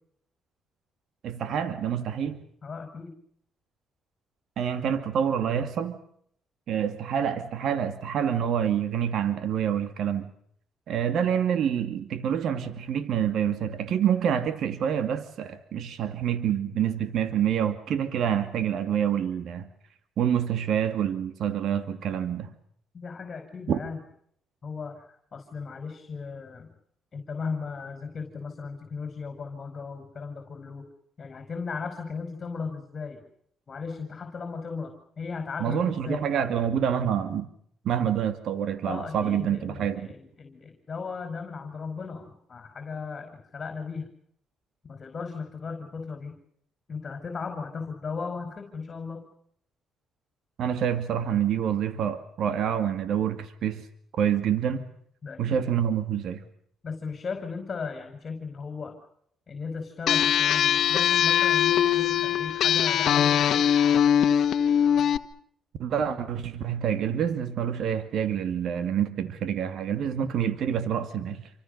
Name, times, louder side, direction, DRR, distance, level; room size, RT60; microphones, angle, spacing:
voice 1, 1.2-2.4 4.6-6.0 6.7-10.3 10.9-19.7 20.2-22.5 23.7-23.8 35.6-37.5 37.8-40.1 50.6-53.9 54.1-54.9 55.4-56.4 65.8-71.5, right 8 dB, 70° right, 2.4 m, -27 dB
voice 2, 2.6-3.2 22.9-24.0 24.6-25.0 25.3-26.7 27.1-30.9 31.2-33.2 33.7-36.3 38.8-44.1 44.8-46.4 46.9-49.2 55.2-55.6 56.8-59.0 59.5-63.6, left 5 dB, 40° left, 5.1 m, -36 dB
sound 1, 60.1-65.2, left 9 dB, 70° left, 1.4 m, -22 dB
28.0 x 25.5 x 6.7 m
cardioid pair, 90°, 0 cm